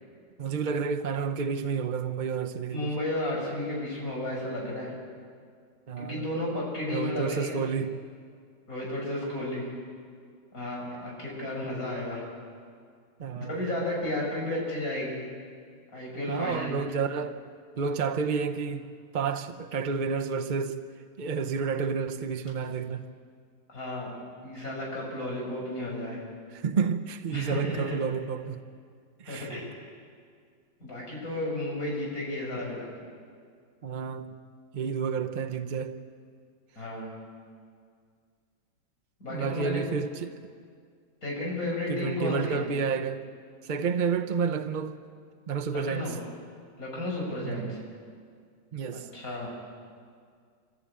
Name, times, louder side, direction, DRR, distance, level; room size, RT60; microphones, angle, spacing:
voice 1, 0.4-2.9 5.9-6.3 6.9-8.0 13.2-13.7 16.3-17.4 17.8-20.8 21.2-23.1 26.5-28.6 29.2-29.6 33.8-34.3 34.7-36.0 39.3-40.3 41.9-43.2 43.6-44.9 45.5-46.2 47.4-47.7 48.7-49.1, right 5 dB, 60° right, 0.5 m, -30 dB
voice 2, 2.7-4.9 6.0-7.6 8.7-9.7 10.5-12.2 13.3-15.2 15.9-16.7 23.7-24.1 24.4-26.2 27.3-28.0 29.3-29.7 30.8-32.9 36.8-37.1 39.2-39.8 41.2-42.7 45.7-46.2 46.8-47.8 48.9-49.5, left 1 dB, 45° left, 6.6 m, -33 dB
25.0 x 15.0 x 8.7 m
omnidirectional pair, 2.0 m